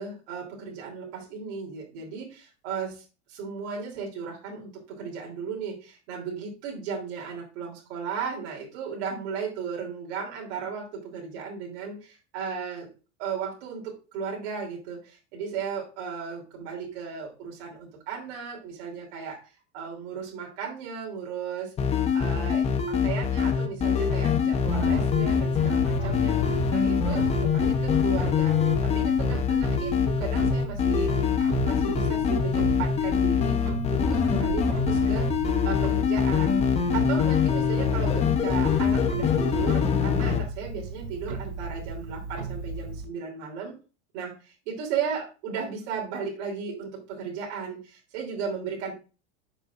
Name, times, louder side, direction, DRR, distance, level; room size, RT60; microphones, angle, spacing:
voice 1, 0.0-12.9 13.2-19.4 19.7-21.7 22.1-43.7 44.1-48.9, right 6 dB, 60° right, -2 dB, 3.3 m, -35 dB
sound 1, 21.8-40.4, left 7 dB, 20° left, 0.8 m, -24 dB
Clock, 24.6-43.0, right 4 dB, 80° right, 3.3 m, -36 dB
9.9 x 6.7 x 2.5 m, 0.33 s
supercardioid pair, 165°, 35 cm